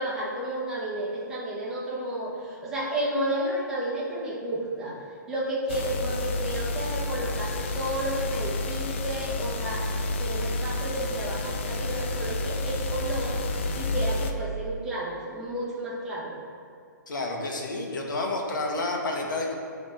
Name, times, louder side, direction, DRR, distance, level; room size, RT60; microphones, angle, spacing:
voice 1, 0.0-13.4 13.8-16.3, right 1 dB, 5° right, -8 dB, 1.0 m, -32 dB
sound 1, 5.7-14.3, left 2 dB, 40° left, 0.4 m, -30 dB
voice 2, 17.1-19.5, left 2 dB, 85° left, 0 dB, 1.4 m, -30 dB
10.0 x 3.5 x 4.4 m, 2.3 s
hypercardioid pair, 170°, 10 cm